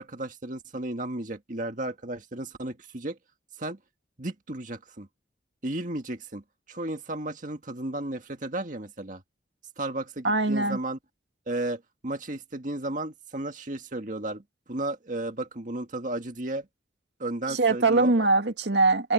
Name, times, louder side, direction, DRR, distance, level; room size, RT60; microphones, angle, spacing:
voice 1, 0.0-3.2 3.6-3.8 4.2-5.1 5.6-6.4 6.7-9.2 9.8-11.0 11.5-14.4 14.7-16.7 17.2-18.1, right 2 dB, 45° right, 1.7 m, -34 dB
voice 2, 10.2-10.8 17.5-19.1, right 3 dB, 70° right, 2.1 m, -22 dB
head